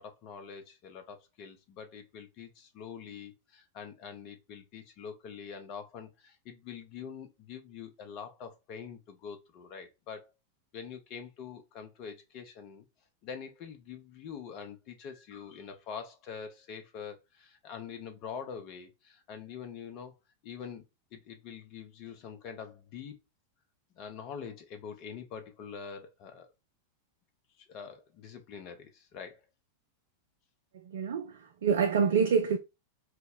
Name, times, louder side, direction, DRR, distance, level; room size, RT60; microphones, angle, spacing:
voice 1, 0.0-10.3 10.7-12.9 13.2-20.1 20.4-20.8 21.1-23.2 23.9-26.5 27.6-29.5, left 7 dB, 40° left, 0.7 m, -45 dB
voice 2, 30.7-32.6, right 6 dB, 60° right, 0.4 m, -27 dB
2.3 x 2.0 x 3.5 m
figure-of-eight pair, 90°, 0 cm